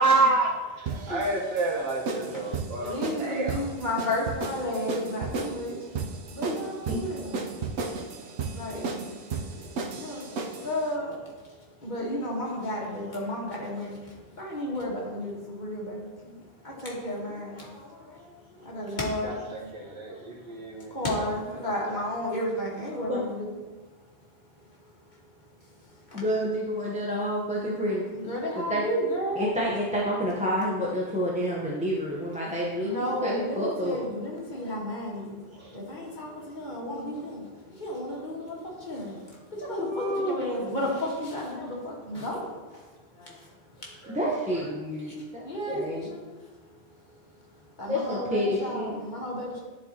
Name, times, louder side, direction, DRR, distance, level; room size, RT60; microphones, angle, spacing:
voice 1, 0.0-3.7 19.2-21.2 21.6-22.0 35.6-35.8 39.7-40.5 44.0-44.2 44.5-44.7, right 2 dB, 70° right, -3 dB, 1.4 m, -29 dB
sound 1, 0.9-10.7, right 4 dB, 90° right, 1.0 m, -34 dB
voice 2, 2.8-7.7 8.2-19.7 20.0-23.6 24.6-24.7 25.9-26.2 28.1-29.5 32.4-42.9 43.1-44.1 45.1-46.2 47.1-47.2 47.8-49.6, left 1 dB, 45° left, -4 dB, 1.5 m, -33 dB
voice 3, 26.1-28.8 29.4-34.0 44.1-46.1 47.9-49.0, equal, 10° right, -5 dB, 0.7 m, -29 dB
10.5 x 4.3 x 2.8 m, 1.3 s
omnidirectional pair, 1.1 m